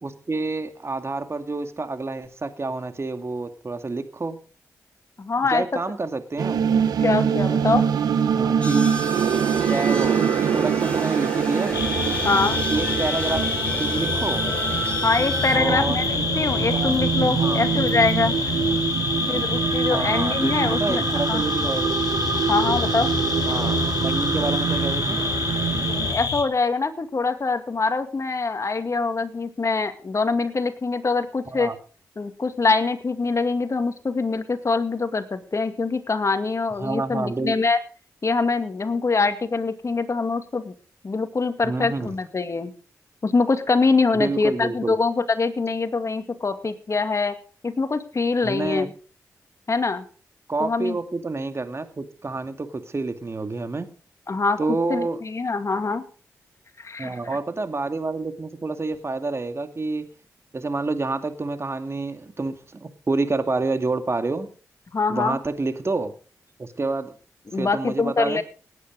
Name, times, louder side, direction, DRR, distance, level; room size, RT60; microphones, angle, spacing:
voice 1, 0.0-4.4 5.5-6.7 8.3-9.0 9.4-11.9 12.7-13.5 13.8-14.5 15.5-16.2 16.7-16.9 17.4-17.6 19.9-22.0 23.4-25.2 31.5-31.8 36.8-37.5 41.6-42.1 44.1-45.0 48.4-48.9 50.5-53.9 54.6-55.2 57.0-60.1 60.5-64.5 65.1-66.1 66.6-67.1 67.5-68.4, right 3 dB, 40° right, 8 dB, 2.3 m, -28 dB
voice 2, 5.2-5.7 7.0-7.9 12.2-12.6 15.0-16.1 16.4-18.5 19.3-21.0 21.3-21.4 22.5-23.1 25.9-31.7 32.2-37.8 38.2-40.7 41.0-42.7 43.2-47.4 47.6-48.9 49.7-50.0 50.6-51.0 54.3-54.6 54.9-56.0 56.8-57.2 64.9-65.4 67.5-68.4, left 4 dB, 50° left, 8 dB, 2.3 m, -24 dB
sound 1, 6.4-26.1, right 7 dB, 90° right, 1.3 m, -25 dB
sound 2, 8.6-15.6, right 1 dB, 20° left, 4.9 m, -33 dB
sound 3, 11.7-26.4, left 5 dB, 75° left, 3.7 m, -26 dB
18.0 x 9.8 x 5.2 m, 0.41 s
supercardioid pair, 45°, 7 cm